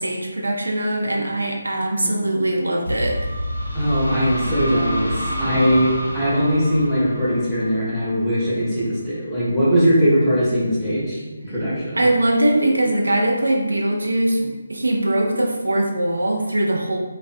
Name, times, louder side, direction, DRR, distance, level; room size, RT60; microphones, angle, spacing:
voice 1, 0.0-3.2 11.9-17.0, right 1 dB, 75° right, 1 dB, 0.3 m, -21 dB
sound 1, 2.9-8.5, equal, 85° left, 0.5 m, -27 dB
voice 2, 3.7-12.1, equal, 5° left, -12 dB, 0.7 m, -20 dB
2.5 x 2.0 x 2.4 m, 1.2 s
figure-of-eight pair, 150°, 0 cm